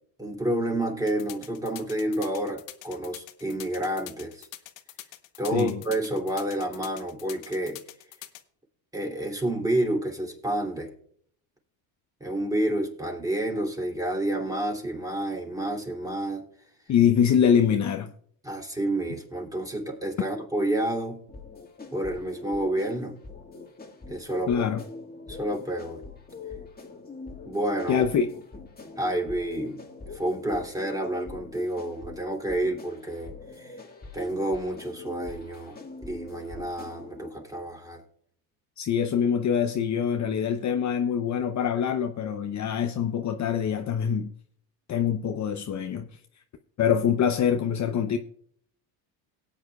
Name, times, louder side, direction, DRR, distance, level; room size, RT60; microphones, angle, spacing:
voice 1, 0.2-4.5 5.4-7.8 8.9-10.9 12.2-16.4 18.4-21.2 21.9-23.1 24.1-24.6 25.3-26.0 27.4-28.0 29.0-33.8 34.1-38.0, right 1 dB, 10° right, 2.8 m, -29 dB
sound 1, 1.1-8.4, left 16 dB, 80° left, 1.1 m, -44 dB
voice 2, 5.5-5.8 16.9-18.1 24.5-24.8 27.9-28.4 38.8-44.3 44.9-46.1 46.8-48.2, left 8 dB, 40° left, 0.7 m, -24 dB
sound 2, 21.3-37.3, left 4 dB, 20° left, 1.9 m, -43 dB
18.0 x 8.8 x 2.3 m
supercardioid pair, 90°, 46 cm